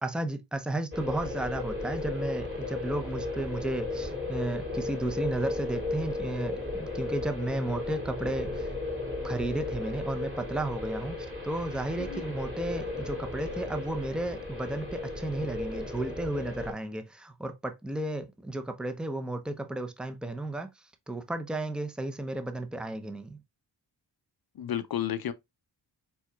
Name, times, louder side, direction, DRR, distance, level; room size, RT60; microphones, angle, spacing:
voice 1, 0.0-8.7 9.2-23.4, right 1 dB, ahead, 0.7 m, -33 dB
sound 1, 0.9-16.7, left 2 dB, 30° right, 2.5 m, -35 dB
voice 2, 24.6-25.3, left 10 dB, 55° left, 0.6 m, -32 dB
4.6 x 4.2 x 2.3 m
cardioid pair, 70°, 45 cm